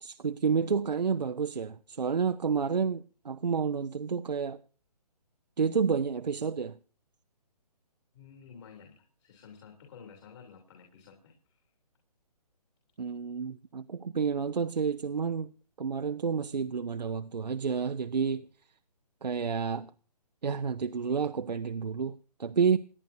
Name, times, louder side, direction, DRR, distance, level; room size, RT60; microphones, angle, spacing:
voice 1, 0.0-4.6 5.6-6.8 13.0-15.5 15.8-18.5 19.2-19.9 20.4-22.8, right 6 dB, 80° right, 0.7 m, -30 dB
voice 2, 8.1-11.6, left 6 dB, 45° left, 3.3 m, -52 dB
28.5 x 10.0 x 2.7 m
figure-of-eight pair, 140°, 21 cm